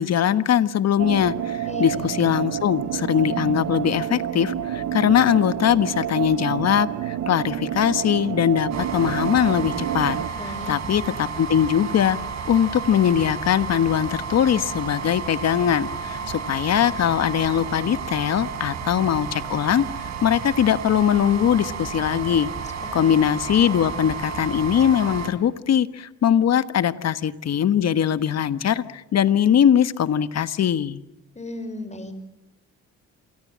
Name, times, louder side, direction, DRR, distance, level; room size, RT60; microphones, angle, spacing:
voice 1, 0.0-12.2 12.4-22.5 22.9-31.0, left 9 dB, 60° left, 13 dB, 1.4 m, -21 dB
sound 1, 1.0-10.3, right 11 dB, 80° right, 1.1 m, -29 dB
voice 2, 1.7-2.1 10.4-10.7 23.0-23.2 31.4-32.3, left 2 dB, 25° left, 10 dB, 5.4 m, -35 dB
sound 2, 8.7-25.3, right 6 dB, 65° right, 4.4 m, -32 dB
28.5 x 21.5 x 7.5 m, 0.88 s
cardioid pair, 90°, 30 cm